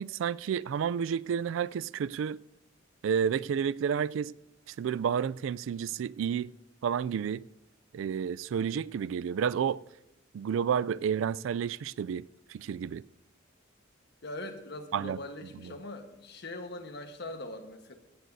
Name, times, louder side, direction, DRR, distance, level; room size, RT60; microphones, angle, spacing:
voice 1, 0.0-2.4 3.0-4.3 4.7-6.5 6.8-7.4 7.9-9.8 10.3-12.2 12.5-13.0 14.9-15.2, right 7 dB, 75° right, 0.3 m, -30 dB
voice 2, 14.2-17.9, left 2 dB, 55° left, 1.3 m, -42 dB
16.0 x 15.5 x 2.7 m
head